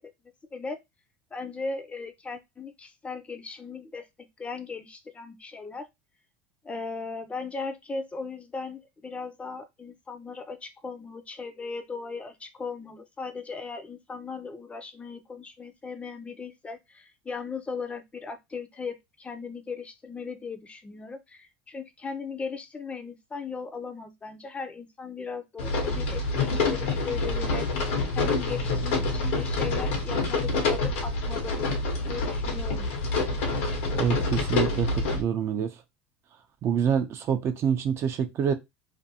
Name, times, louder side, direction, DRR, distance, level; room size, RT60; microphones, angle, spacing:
voice 1, 1.3-4.1 4.4-5.9 6.6-31.6 32.1-32.9, left 4 dB, 20° left, 0.5 m, -37 dB
sound 1, 25.6-35.2, left 3 dB, 80° left, 0.9 m, -27 dB
voice 2, 33.9-35.8 36.6-38.5, right 8 dB, 45° right, 0.4 m, -26 dB
2.5 x 2.2 x 2.7 m
supercardioid pair, 100°, 6 cm